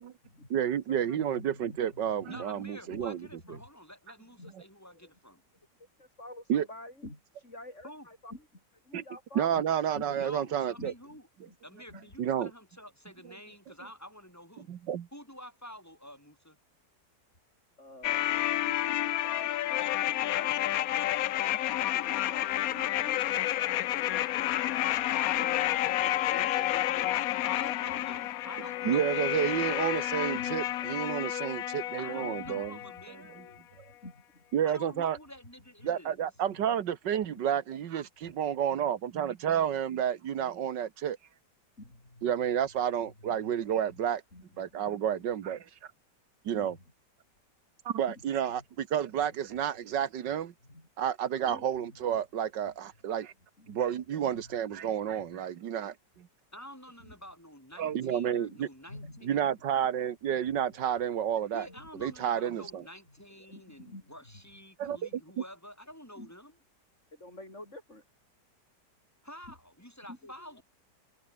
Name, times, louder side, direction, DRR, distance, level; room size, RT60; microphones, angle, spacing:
voice 1, 0.5-3.3 6.5-6.7 8.9-9.0 9.4-10.9 12.2-12.5 14.6-15.1 28.9-32.8 34.5-35.2 35.8-41.2 42.2-44.2 44.6-45.7 46.5-46.7 47.9-50.5 51.0-53.3 53.7-56.3 57.8-58.7 59.2-61.7 62.0-62.8 64.8-65.2, right 9 dB, 85° right, 1.9 m, -30 dB
voice 2, 1.0-2.4 2.9-3.0 3.4-3.7 4.4-4.5 4.9-5.0 5.8-9.7 10.0-10.3 10.8-11.2 11.5-11.6 11.9-12.1 17.8-19.8 20.2-20.6 21.9-24.5 25.3-27.2 27.6-28.3 29.7-30.0 30.3-31.0 32.2-32.9 33.4-33.6 34.0-34.1 35.8-35.9 36.4-36.6 37.4-37.5 38.2-38.6 41.8-42.3 43.0-43.8 44.3-45.1 46.5-46.8 48.0-48.6 49.2-49.3 50.6-50.9 51.4-52.0 53.6-53.8 54.3-55.3 57.0-57.2 58.5-58.6 58.9-59.3 60.4-60.6 61.6-62.1 62.6-62.7 63.1-63.2 63.5-64.2 64.8-65.0 66.2-66.3 67.1-68.0 70.1-70.6, left 1 dB, 40° left, 7.0 m, -49 dB
voice 3, 2.3-5.4 7.8-8.1 10.2-11.2 11.6-14.7 15.1-16.6 27.4-29.6 32.0-33.4 34.6-36.2 56.5-59.6 61.5-66.5 69.2-70.6, equal, 10° left, 8.0 m, -49 dB
sound 1, 18.0-33.1 33.3-33.4, left 14 dB, 65° left, 1.0 m, -30 dB
omnidirectional pair, 1.9 m